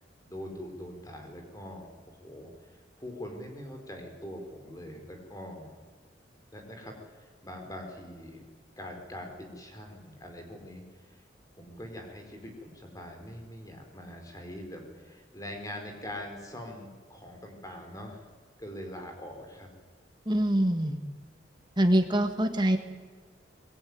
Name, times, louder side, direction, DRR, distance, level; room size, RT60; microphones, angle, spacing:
voice 1, 0.2-5.8 6.5-8.5 8.8-11.2 11.5-18.2 18.6-19.7, left 1 dB, 20° left, 3 dB, 4.5 m, -43 dB
voice 2, 20.3-21.0 21.8-22.8, right 1 dB, 25° right, 6 dB, 2.0 m, -24 dB
22.5 x 21.5 x 9.7 m, 1.5 s
head